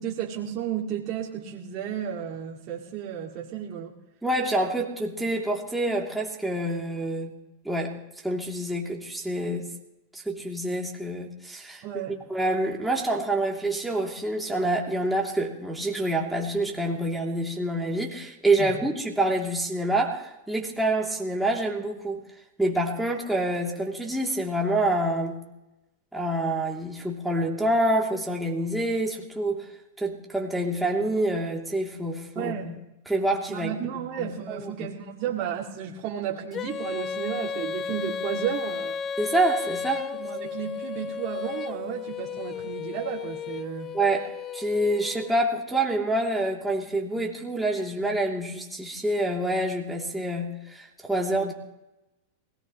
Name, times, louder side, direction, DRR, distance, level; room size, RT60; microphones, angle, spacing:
voice 1, 0.0-4.0 11.8-12.2 18.6-18.8 32.4-32.8 33.5-39.0 40.2-43.9, right 9 dB, 45° right, -2 dB, 2.5 m, -33 dB
voice 2, 4.2-7.3 7.6-8.0 8.2-9.7 10.1-11.8 12.3-22.2 22.6-25.4 26.1-29.6 30.0-32.8 33.1-34.7 39.2-40.1 43.9-51.5, right 1 dB, 5° right, -2 dB, 3.1 m, -27 dB
Female singing, 36.5-45.3, left 6 dB, 30° left, 0.6 m, -34 dB
23.0 x 18.5 x 3.2 m, 0.94 s
hypercardioid pair, 100°, 0 cm